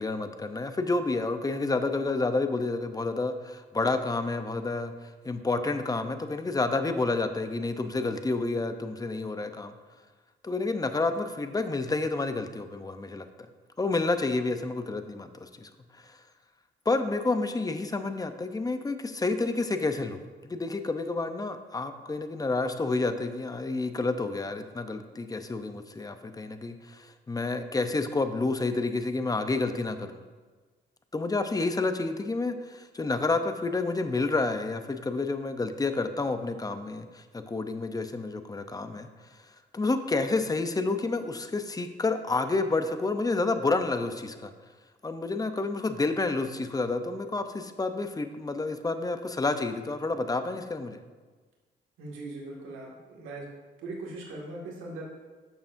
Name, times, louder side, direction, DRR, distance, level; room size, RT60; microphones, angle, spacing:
voice 1, 0.0-9.7 10.4-13.3 13.8-15.7 16.0-16.2 16.9-20.2 20.5-30.2 31.1-39.1 39.7-44.5 45.0-51.0, left 3 dB, 20° left, 8 dB, 0.6 m, -29 dB
voice 2, 52.0-53.5 53.8-55.0, right 2 dB, 85° right, -3 dB, 2.0 m, -40 dB
11.5 x 6.9 x 2.6 m, 1.4 s
cardioid pair, 90°, 20 cm